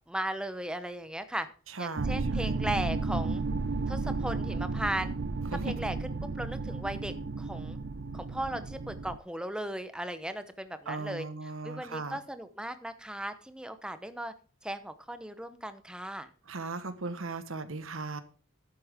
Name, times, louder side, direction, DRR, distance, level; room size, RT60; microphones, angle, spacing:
voice 1, 0.1-1.5 1.8-3.4 3.9-5.1 5.5-7.8 8.1-14.3 14.6-16.3, right 1 dB, 5° right, 0.8 m, -37 dB
voice 2, 1.7-2.6 5.5-5.7 10.9-12.2 16.5-18.2, right 3 dB, 70° right, 1.2 m, -37 dB
sound 1, 2.0-9.2, right 3 dB, 50° right, 0.5 m, -33 dB
11.5 x 8.6 x 3.6 m
head